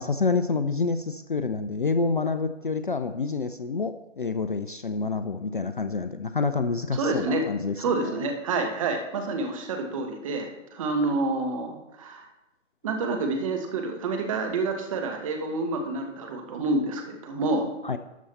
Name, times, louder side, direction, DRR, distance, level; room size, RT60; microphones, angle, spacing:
voice 1, 0.0-8.2 17.8-18.0, left 4 dB, 45° left, 10 dB, 0.4 m, -28 dB
voice 2, 6.9-7.4 7.8-12.2 12.8-17.7, right 3 dB, 25° right, 4 dB, 1.2 m, -28 dB
12.5 x 6.9 x 4.1 m, 0.96 s
figure-of-eight pair, 140°, 39 cm